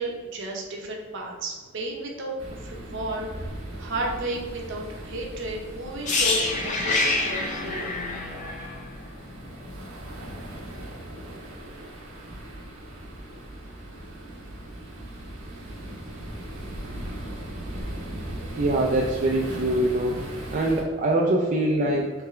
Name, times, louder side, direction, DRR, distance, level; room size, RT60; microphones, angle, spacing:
voice 1, 0.0-2.3 2.6-3.5 3.8-8.0, right 1 dB, 60° right, 0 dB, 0.8 m, -33 dB
sound 1, 2.4-20.8, right 1 dB, 85° right, 1.0 m, -38 dB
sound 2, 6.0-9.9 10.2-10.4, left 3 dB, 35° left, 0.5 m, -27 dB
voice 2, 18.6-20.1 20.5-22.1, right 1 dB, 40° right, -2 dB, 0.4 m, -23 dB
3.6 x 3.3 x 3.2 m, 1.5 s
head